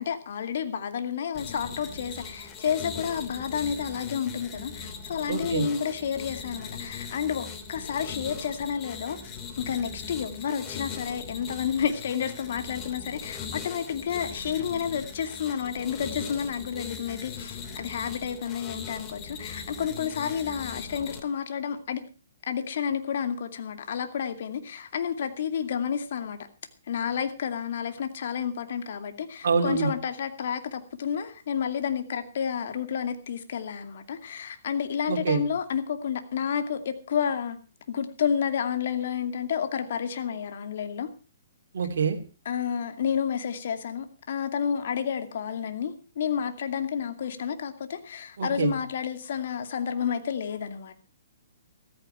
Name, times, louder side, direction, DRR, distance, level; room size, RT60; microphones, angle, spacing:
voice 1, 0.0-9.2 9.6-22.0 22.5-26.4 26.9-37.6 37.9-41.1 42.5-50.9, left 7 dB, 60° left, 8 dB, 2.4 m, -30 dB
sound 1, 1.3-21.2, left 5 dB, 25° left, 2.9 m, -40 dB
voice 2, 5.3-5.7 29.4-29.9 35.1-35.4 41.7-42.2 48.4-48.7, right 6 dB, 65° right, 3 dB, 3.0 m, -25 dB
14.5 x 14.5 x 4.5 m, 0.34 s
hypercardioid pair, 130°, 0 cm